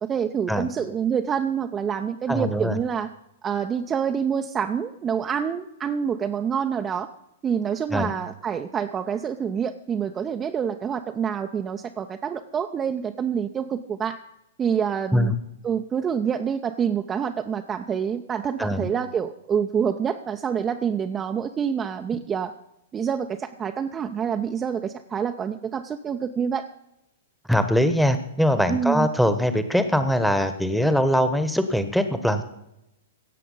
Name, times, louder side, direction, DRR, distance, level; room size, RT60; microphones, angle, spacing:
voice 1, 0.0-3.1 3.4-7.1 7.4-14.2 14.6-15.4 15.6-22.5 22.9-26.6 28.7-29.1, right 7 dB, 20° right, 6 dB, 0.6 m, -27 dB
voice 2, 2.3-2.8 7.9-8.1 15.1-15.3 18.6-18.9 27.5-32.4, equal, ahead, 10 dB, 1.1 m, -22 dB
17.0 x 7.6 x 5.5 m, 0.86 s
figure-of-eight pair, 105°, 0 cm